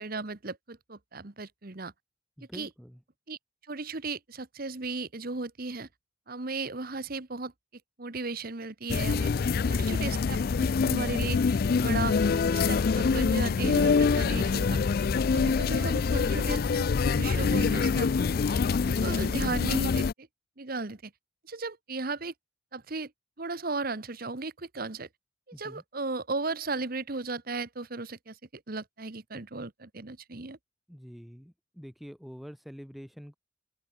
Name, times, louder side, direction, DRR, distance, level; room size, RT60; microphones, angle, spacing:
voice 1, 0.0-1.9 2.5-2.7 3.3-3.4 3.7-5.9 6.3-7.5 8.0-9.3 9.7-11.4 11.7-12.1 12.5-14.8 15.3-16.9 17.2-18.1 18.5-20.3 20.6-21.1 21.4-22.3 22.7-23.1 23.4-25.1 25.6-30.6, right 3 dB, 50° right, 1.3 m, -35 dB
voice 2, 2.4-3.0 25.5-25.8 30.9-33.4, equal, ahead, 3.6 m, -46 dB
sound 1, 8.9-20.1, left 5 dB, 50° left, 0.4 m, -25 dB
sound 2, 10.1-17.5, left 2 dB, 70° left, 3.2 m, -57 dB
open air
head